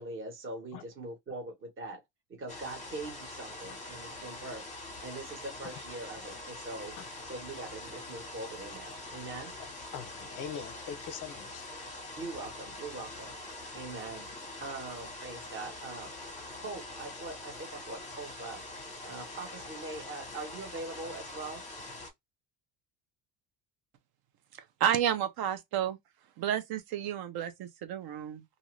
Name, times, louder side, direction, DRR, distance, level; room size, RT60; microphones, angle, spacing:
voice 1, 0.0-2.0 2.3-6.9 7.3-9.5 12.2-13.3 13.7-14.3 14.6-16.1 16.5-18.6 19.0-21.6, right 2 dB, 25° right, 1.1 m, -42 dB
sound 1, 2.5-22.1, left 2 dB, 15° left, 1.0 m, -44 dB
voice 2, 9.9-11.7, left 7 dB, 40° left, 0.5 m, -42 dB
voice 3, 24.8-26.0 26.4-28.4, right 10 dB, 50° right, 0.7 m, -31 dB
2.6 x 2.5 x 3.1 m
cardioid pair, 170°, 49 cm